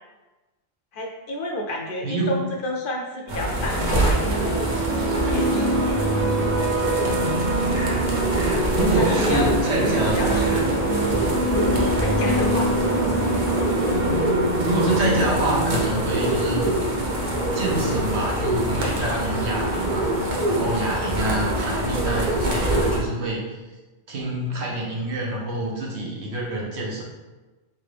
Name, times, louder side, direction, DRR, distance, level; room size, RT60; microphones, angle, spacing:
voice 1, 0.9-4.7 4.9-6.0 8.8-9.6 10.1-10.6 11.6-12.7, left 1 dB, 60° left, 1 dB, 0.6 m, -30 dB
voice 2, 2.0-2.4 8.7-10.4 14.6-16.9 17.5-20.1 20.4-23.4 24.1-27.0, right 1 dB, 75° right, -2 dB, 1.2 m, -26 dB
sound 1, 3.3-23.0, right 1 dB, 50° right, 0.8 m, -25 dB
sound 2, 3.8-15.8, right 2 dB, 15° right, 0.5 m, -25 dB
3.8 x 3.3 x 3.3 m, 1.2 s
omnidirectional pair, 1.1 m